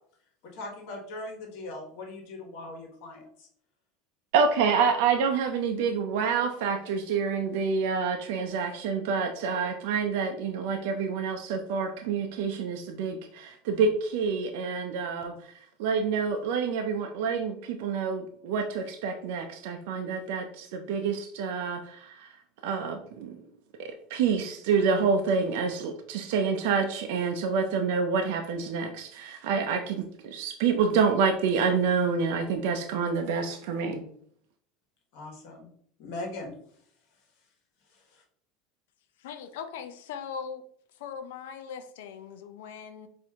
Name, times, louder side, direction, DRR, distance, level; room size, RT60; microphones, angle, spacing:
voice 1, 0.4-3.5 35.1-35.7 36.0-36.5 38.1-38.2, left 2 dB, 65° left, 1 dB, 1.3 m, -40 dB
voice 2, 4.3-23.4 23.8-34.0, right 5 dB, 75° right, 4 dB, 0.5 m, -28 dB
voice 3, 39.2-40.6 40.9-43.1, left 7 dB, 85° left, 9 dB, 0.5 m, -40 dB
4.3 x 2.6 x 3.5 m, 0.63 s
supercardioid pair, 120°, 0 cm